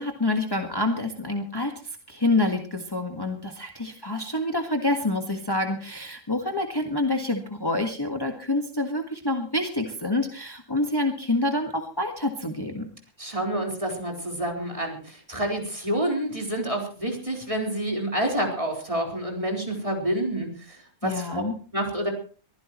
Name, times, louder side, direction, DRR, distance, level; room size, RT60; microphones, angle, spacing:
voice 1, 0.0-1.7 2.1-12.8 21.0-21.5, left 2 dB, 20° left, 3 dB, 1.6 m, -27 dB
voice 2, 13.2-20.8 21.0-21.4 21.7-22.1, right 1 dB, 25° right, 0 dB, 4.3 m, -28 dB
23.0 x 15.5 x 3.1 m, 0.40 s
omnidirectional pair, 1.3 m